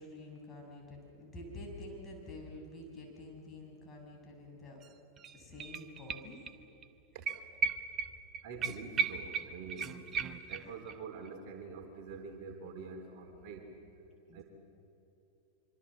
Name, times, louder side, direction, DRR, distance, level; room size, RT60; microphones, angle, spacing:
voice 1, 0.0-4.8 5.3-6.4 10.4-10.5 14.3-14.4, left 1 dB, 20° left, 0 dB, 6.4 m, -48 dB
sound 1, 4.8-4.9 5.2-6.6 6.8-6.9 7.3-10.9 11.3-11.4, right 7 dB, 30° right, 1.1 m, -36 dB
voice 2, 8.4-10.0 10.5-13.7 14.3-14.4, right 4 dB, 45° right, 3 dB, 3.6 m, -45 dB
25.5 x 25.0 x 7.6 m, 2.9 s
figure-of-eight pair, 90°, 0 cm